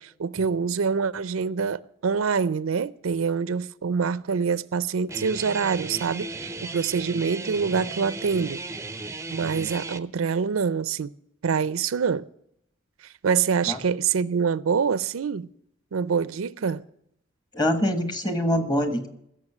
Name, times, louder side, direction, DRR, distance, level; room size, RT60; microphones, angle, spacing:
voice 1, 0.0-8.6 9.3-11.1 11.4-12.3 13.2-15.5 15.9-16.8, right 6 dB, 85° right, 0.5 m, -25 dB
Guitar, 5.1-10.0, right 3 dB, 15° right, 0.5 m, -35 dB
voice 2, 17.5-19.1, equal, 20° left, 1.4 m, -24 dB
15.5 x 7.1 x 7.3 m
head